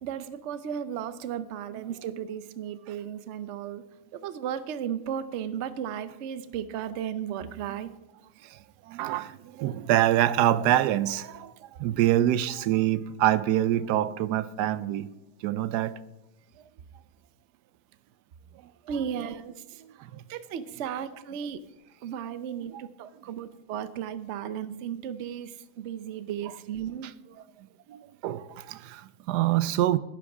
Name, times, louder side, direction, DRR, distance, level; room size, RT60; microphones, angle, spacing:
voice 1, 0.0-3.9 4.2-7.9 18.9-19.8 20.3-21.6 22.0-27.1, right 9 dB, 60° right, 0.8 m, -35 dB
voice 2, 8.9-11.5 11.8-15.1 15.4-15.9 22.7-22.8 27.9-30.0, right 13 dB, 90° right, 1.2 m, -25 dB
12.0 x 11.5 x 4.9 m
omnidirectional pair, 1.7 m